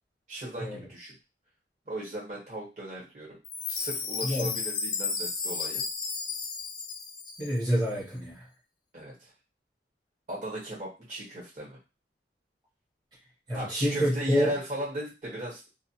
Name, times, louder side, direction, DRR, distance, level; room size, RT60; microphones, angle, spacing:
voice 1, 0.3-1.1 1.8-3.4 3.7-5.8 8.9-9.3 10.3-11.8 13.5-15.6, right 1 dB, 45° right, -5 dB, 1.3 m, -37 dB
Chime, 3.4-7.7, left 5 dB, 25° left, 0.3 m, -33 dB
voice 2, 7.4-8.4 13.5-14.6, equal, 20° right, -9 dB, 1.0 m, -27 dB
2.3 x 2.3 x 2.8 m, 0.28 s
head